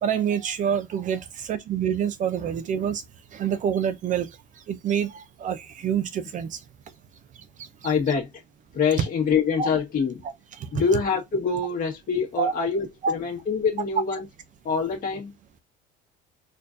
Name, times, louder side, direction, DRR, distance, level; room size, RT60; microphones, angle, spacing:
voice 1, 0.0-3.0 3.3-4.3 4.7-6.6 7.8-7.9 9.6-9.7 10.2-10.7 12.4-12.5 13.0-13.1, right 8 dB, 40° right, 0.5 m, -27 dB
voice 2, 7.8-8.3 8.7-10.2 10.7-14.2 14.6-15.3, left 5 dB, 45° left, 1.5 m, -25 dB
4.4 x 2.5 x 2.5 m
cardioid pair, 125°, 20 cm